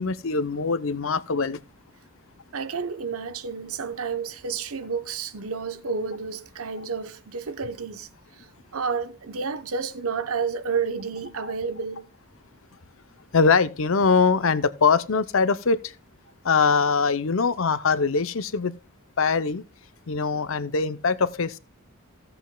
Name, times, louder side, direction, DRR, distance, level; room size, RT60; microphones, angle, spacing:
voice 1, 0.0-1.6 11.4-11.5 13.3-15.8 16.4-18.7 19.2-19.6 20.1-21.6, left 5 dB, 65° left, 0.7 m, -22 dB
voice 2, 2.5-8.1 8.7-12.1, right 5 dB, 80° right, 0.9 m, -30 dB
16.0 x 7.8 x 2.3 m
head